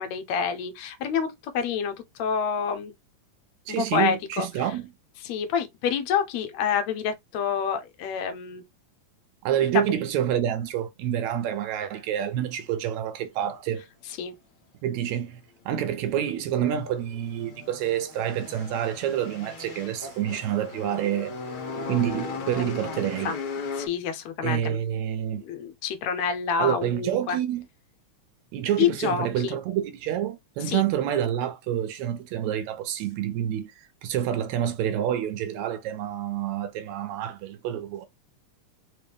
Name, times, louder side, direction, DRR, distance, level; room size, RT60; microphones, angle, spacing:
voice 1, 0.0-2.9 3.7-4.5 5.2-8.6 9.7-10.0 14.2-14.3 22.8-23.0 23.3-23.4 23.8-24.8 25.4-27.4 28.8-29.6 30.7-30.8, left 7 dB, 75° left, 1.8 m, -28 dB
voice 2, 3.7-4.9 9.4-13.9 14.8-15.4 15.7-21.4 21.9-23.3 24.4-25.4 26.6-27.7 28.5-38.1, right 10 dB, 80° right, 1.7 m, -28 dB
sound 1, 16.3-23.9, left 4 dB, 50° left, 1.8 m, -37 dB
4.6 x 3.0 x 3.4 m
omnidirectional pair, 3.6 m